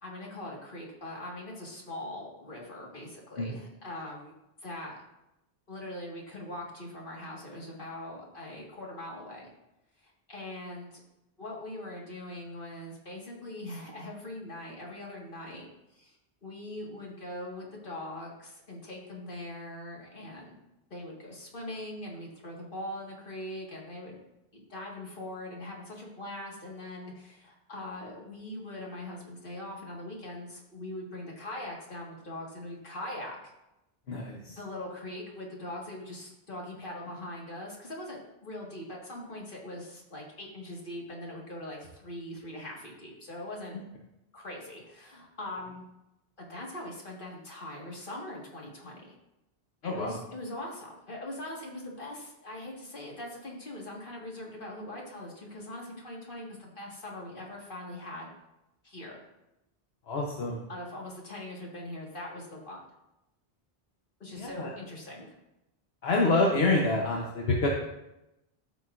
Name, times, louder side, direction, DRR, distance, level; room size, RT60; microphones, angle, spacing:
voice 1, 0.0-4.3 4.6-5.0 5.7-9.5 10.0-11.0 11.4-15.7 15.9-16.2 16.4-20.6 20.9-24.2 24.5-33.4 34.5-43.8 44.3-45.8 46.4-49.2 49.8-58.3 58.8-59.2 60.7-62.8 64.2-65.4, left 1 dB, 55° left, -2 dB, 1.9 m, -41 dB
voice 2, 34.1-34.6 49.8-50.2 60.1-60.6 64.4-64.7 66.0-67.7, left 2 dB, 75° left, -1 dB, 1.2 m, -27 dB
14.0 x 6.0 x 2.5 m, 0.92 s
omnidirectional pair, 1.0 m